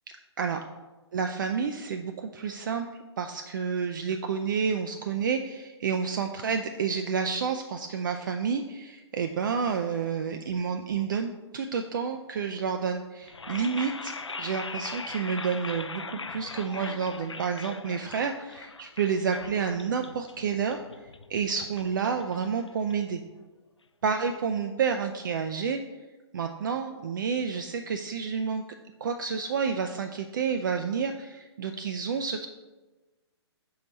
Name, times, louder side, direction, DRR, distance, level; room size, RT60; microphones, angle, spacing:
voice 1, 1.1-2.9 3.2-14.1 14.4-23.2 24.0-25.8 26.3-28.6 29.0-32.5, right 6 dB, 45° right, 5 dB, 0.4 m, -30 dB
sound 1, 13.2-23.3, left 4 dB, 85° left, 0.4 m, -41 dB
4.7 x 4.1 x 5.2 m, 1.2 s
figure-of-eight pair, 125°, 14 cm